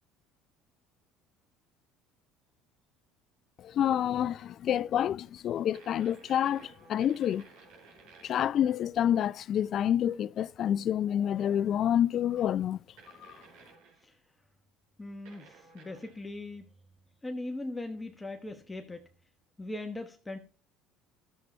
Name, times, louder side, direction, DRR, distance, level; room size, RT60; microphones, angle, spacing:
voice 1, 3.6-7.4 8.2-12.8, left 10 dB, 55° left, 0.4 m, -28 dB
sound 1, 4.2-4.6 5.7-8.7 11.7-11.8 13.0-14.1 15.3-16.3, right 5 dB, 75° right, 4.3 m, -56 dB
voice 2, 15.0-16.7 17.2-19.1 19.6-20.4, left 2 dB, 15° left, 1.2 m, -39 dB
12.5 x 7.4 x 4.4 m
supercardioid pair, 85°, 0 cm